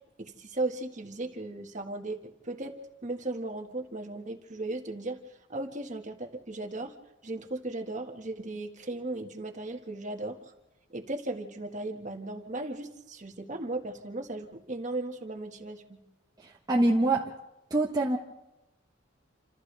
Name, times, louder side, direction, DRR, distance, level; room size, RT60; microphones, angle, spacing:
voice 1, 0.2-2.7 3.0-5.2 5.5-6.9 7.2-10.5 10.9-16.0, right 2 dB, 40° right, 4 dB, 1.7 m, -36 dB
voice 2, 16.7-17.3 17.7-18.2, right 2 dB, 20° right, -1 dB, 1.2 m, -24 dB
28.5 x 26.5 x 3.4 m, 0.94 s
head